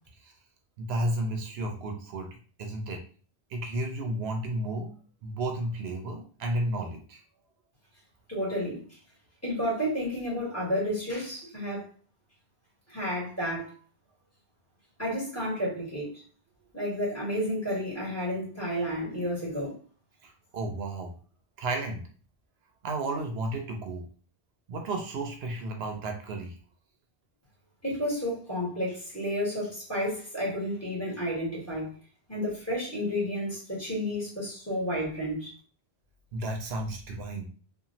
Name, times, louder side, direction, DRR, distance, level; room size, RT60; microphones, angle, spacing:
voice 1, 0.8-2.3 2.6-3.0 3.5-4.9 5.2-7.2 20.2-21.1 21.6-22.0 22.8-24.1 24.7-26.5 36.3-37.5, right 2 dB, 80° right, 3 dB, 0.8 m, -32 dB
voice 2, 8.3-8.8 9.4-11.9 12.9-13.7 15.0-16.2 16.7-19.7 27.8-32.0 32.3-35.5, equal, 15° left, -8 dB, 1.5 m, -31 dB
2.9 x 2.4 x 2.6 m, 0.40 s
omnidirectional pair, 1.1 m